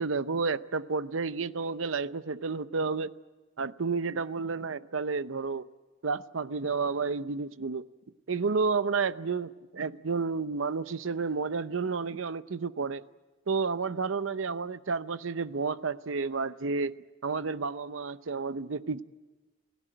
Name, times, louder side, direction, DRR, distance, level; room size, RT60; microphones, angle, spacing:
voice 1, 0.0-3.1 3.6-5.7 6.0-7.8 8.3-13.0 13.5-17.0 17.2-19.0, right 4 dB, 75° right, 14 dB, 0.7 m, -31 dB
28.5 x 16.5 x 9.0 m, 1.2 s
head